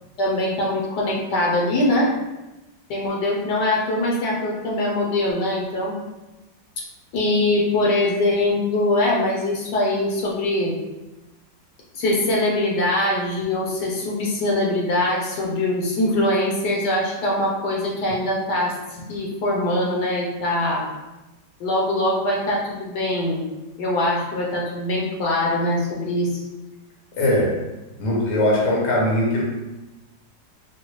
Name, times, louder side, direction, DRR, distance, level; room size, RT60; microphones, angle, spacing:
voice 1, 0.2-2.1 2.9-5.9 7.1-10.7 11.9-18.7 19.1-20.8 21.6-23.5 23.8-26.4, left 1 dB, 75° left, -3 dB, 1.3 m, -22 dB
voice 2, 27.2-27.6 28.0-29.4, left 1 dB, 60° left, -2 dB, 1.0 m, -20 dB
4.1 x 2.1 x 3.0 m, 1.0 s
omnidirectional pair, 1.9 m